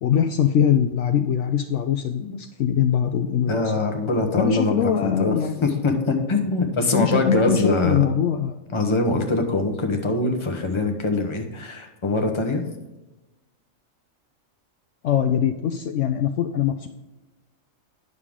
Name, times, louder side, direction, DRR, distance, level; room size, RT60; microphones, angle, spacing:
voice 1, 0.0-3.6 4.4-5.7 6.9-8.6 15.0-16.9, left 9 dB, 70° left, 6 dB, 0.9 m, -22 dB
voice 2, 3.5-8.0 8.7-12.6, left 2 dB, 25° left, 4 dB, 1.0 m, -23 dB
9.7 x 6.6 x 3.7 m, 1.0 s
omnidirectional pair, 1.4 m